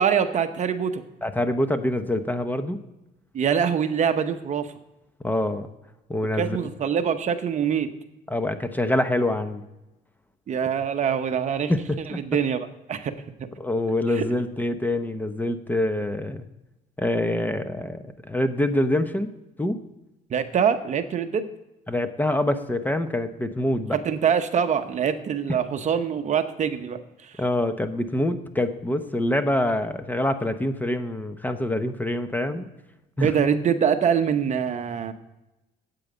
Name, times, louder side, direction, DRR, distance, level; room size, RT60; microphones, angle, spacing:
voice 1, 0.0-1.0 3.3-4.7 6.4-7.9 10.5-11.7 12.1-12.6 12.9-13.1 14.1-14.3 20.3-21.5 23.9-27.3 33.2-35.1, right 7 dB, 45° right, 9 dB, 0.9 m, -24 dB
voice 2, 1.2-2.8 5.2-5.7 6.1-6.7 8.3-9.6 11.7-12.2 13.6-16.4 17.0-19.3 19.6-19.8 21.9-24.0 27.4-32.7 33.2-33.3, left 1 dB, 10° left, 9 dB, 0.8 m, -25 dB
8.9 x 8.5 x 8.0 m, 0.96 s
cardioid pair, 110°, 17 cm